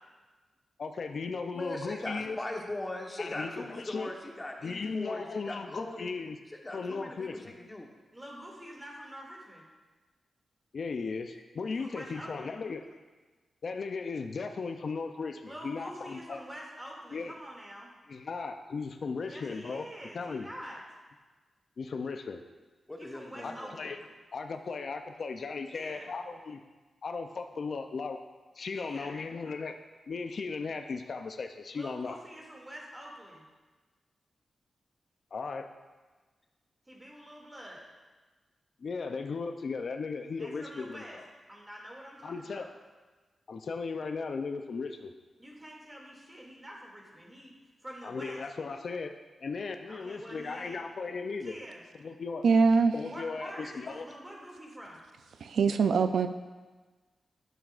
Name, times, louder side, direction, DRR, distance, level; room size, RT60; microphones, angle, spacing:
voice 1, 0.8-2.4 3.2-4.1 4.6-6.4 6.7-7.5 10.7-12.8 13.6-16.4 17.1-17.3 18.1-19.9 20.1-20.5 21.8-22.4 23.4-24.0 24.3-26.6 27.0-28.2 28.6-29.8 30.1-32.2 35.3-35.7 38.8-41.2 42.2-42.7 43.5-45.1 48.0-51.6 52.0-52.4 52.9-54.1, left 4 dB, 65° left, 7 dB, 0.5 m, -36 dB
voice 2, 1.5-6.1 6.5-7.9 22.9-23.8, left 1 dB, 25° left, 1 dB, 1.1 m, -40 dB
voice 3, 8.1-9.7 11.7-12.6 15.4-17.9 19.3-20.8 23.0-24.0 25.7-26.1 28.7-29.2 31.7-33.4 36.9-37.8 40.4-41.2 41.5-42.7 45.4-47.5 47.8-48.4 49.9-50.8 51.4-51.8 53.1-55.0, equal, 20° right, -2 dB, 2.4 m, -46 dB
voice 4, 52.4-52.9 55.4-56.3, right 5 dB, 85° right, 9 dB, 0.3 m, -23 dB
11.0 x 7.2 x 2.5 m, 1.3 s
cardioid pair, 65°, 0 cm